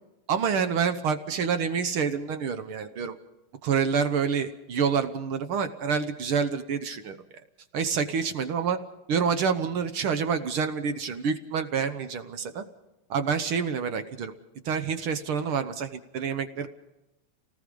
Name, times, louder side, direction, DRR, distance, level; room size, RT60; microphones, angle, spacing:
voice 1, 0.3-3.2 3.6-7.2 7.7-8.8 9.1-12.6 13.1-14.3 14.6-16.7, right 6 dB, 65° right, 9 dB, 1.4 m, -27 dB
29.0 x 19.0 x 5.3 m, 0.94 s
omnidirectional pair, 3.7 m